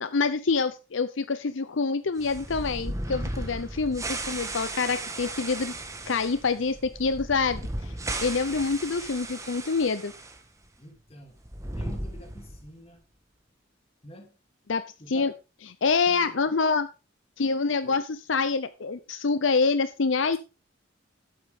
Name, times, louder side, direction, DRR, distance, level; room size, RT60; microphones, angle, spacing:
voice 1, 0.0-5.7 6.1-10.1 14.7-15.3 15.8-16.9 17.4-20.4, left 4 dB, 80° left, 12 dB, 0.7 m, -26 dB
sound 1, 2.2-10.4 10.6-10.7 11.4-12.7, right 2 dB, 15° right, 1.4 m, -36 dB
voice 2, 10.8-11.4 11.7-13.1 14.0-14.3 15.0-15.3 16.0-16.4 17.8-18.0, equal, 30° left, 4 dB, 2.9 m, -46 dB
12.0 x 8.7 x 3.6 m, 0.29 s
head